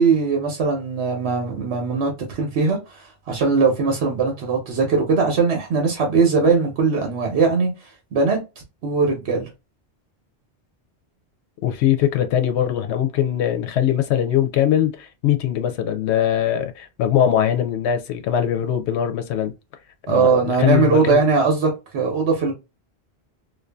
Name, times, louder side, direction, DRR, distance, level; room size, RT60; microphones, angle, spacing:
voice 1, 0.0-2.1 2.4-7.7 8.1-8.4 8.8-9.5 20.1-22.5, right 4 dB, 80° right, 1.1 m, -20 dB
voice 2, 11.6-19.5 20.1-21.2, left 10 dB, 90° left, 0.8 m, -21 dB
2.6 x 2.4 x 2.2 m
omnidirectional pair, 1.1 m